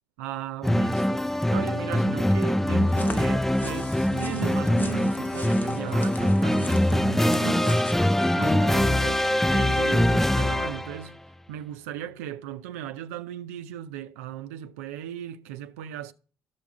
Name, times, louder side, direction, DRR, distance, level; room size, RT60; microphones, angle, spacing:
voice 1, 0.2-7.9 8.4-11.2 11.5-16.1, right 11 dB, 85° right, 0.5 m, -37 dB
sound 1, 0.6-11.0, left 1 dB, 5° left, 0.3 m, -23 dB
sound 2, 2.8-8.8, left 3 dB, 25° left, 0.9 m, -41 dB
12.5 x 6.1 x 3.5 m
hypercardioid pair, 55°, 8 cm